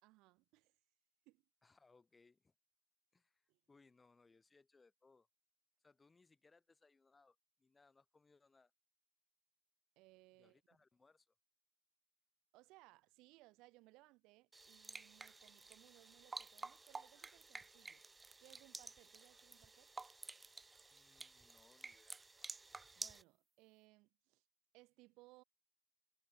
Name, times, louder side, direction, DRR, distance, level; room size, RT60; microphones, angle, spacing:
voice 1, 0.0-0.8 1.3-1.4 3.5-3.6 10.0-10.6 12.5-18.0 18.4-19.9 23.0-24.4 24.7-25.4, right 22 dB, 75° right, 2.5 m, -66 dB
voice 2, 1.6-2.5 3.1-5.3 5.8-8.7 10.4-11.3 20.9-22.2, left 4 dB, 25° left, 6.3 m, -70 dB
sound 1, 14.5-23.2, right 3 dB, 20° right, 0.7 m, -52 dB
supercardioid pair, 75°, 0 cm